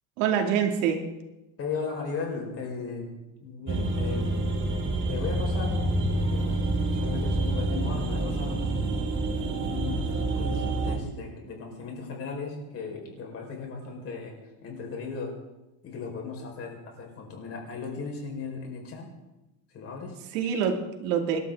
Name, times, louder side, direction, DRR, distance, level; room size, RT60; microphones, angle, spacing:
voice 1, 0.2-1.1 20.3-21.4, right 7 dB, 85° right, 4 dB, 2.7 m, -26 dB
voice 2, 1.6-3.1 3.4-4.5 5.1-5.8 6.1-8.8 9.1-15.3 15.8-19.1 19.7-20.1, left 4 dB, 35° left, 0 dB, 5.0 m, -37 dB
sound 1, 3.7-11.0, right 2 dB, 30° right, 2.6 m, -27 dB
27.0 x 12.5 x 3.8 m, 1.0 s
cardioid pair, 155°, 39 cm